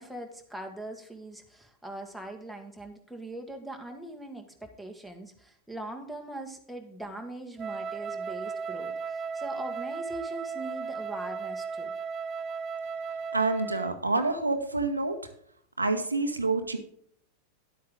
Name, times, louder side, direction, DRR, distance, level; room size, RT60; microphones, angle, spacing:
voice 1, 0.0-11.9, right 1 dB, ahead, 2 dB, 1.7 m, -41 dB
Wind instrument woodwind instrument, 7.6-14.0, right 5 dB, 30° right, 0.5 m, -35 dB
voice 2, 13.3-15.2 15.8-16.8, right 3 dB, 80° right, 7 dB, 1.1 m, -27 dB
11.0 x 8.4 x 3.7 m, 0.65 s
figure-of-eight pair, 90°, 0 cm